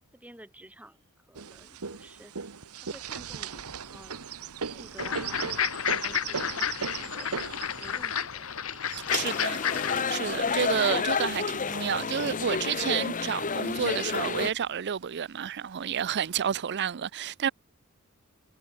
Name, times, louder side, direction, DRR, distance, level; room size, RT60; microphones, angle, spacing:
voice 1, 0.1-2.4 2.8-4.3 4.7-8.8, right 1 dB, 5° right, 6.3 m, -51 dB
sound 1, 1.3-11.6 12.3-13.2 13.6-13.7 14.0-14.7 15.5-15.6 16.2-16.6, right 6 dB, 80° right, 1.1 m, -38 dB
sound 2, 5.0-10.0, left 8 dB, 65° left, 1.2 m, -31 dB
voice 2, 8.9-17.5, right 8 dB, 50° right, 0.5 m, -30 dB
sound 3, 9.1-14.5, left 5 dB, 35° left, 0.9 m, -30 dB
head